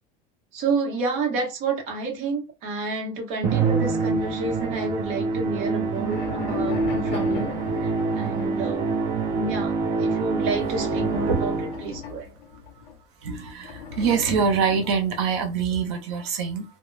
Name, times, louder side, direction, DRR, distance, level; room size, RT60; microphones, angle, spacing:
voice 1, 0.5-9.0 9.3-12.3, right 3 dB, 50° right, 0.9 m, -30 dB
Musical instrument, 3.4-12.0, right 4 dB, 25° right, 0.4 m, -26 dB
sound 1, 3.6-5.2 5.7-8.8 10.4-12.9 13.6-15.5, left 6 dB, 45° left, 0.8 m, -37 dB
voice 2, 13.2-16.6, right 6 dB, 85° right, 0.8 m, -24 dB
2.2 x 2.1 x 3.1 m
cardioid pair, 175°, 15 cm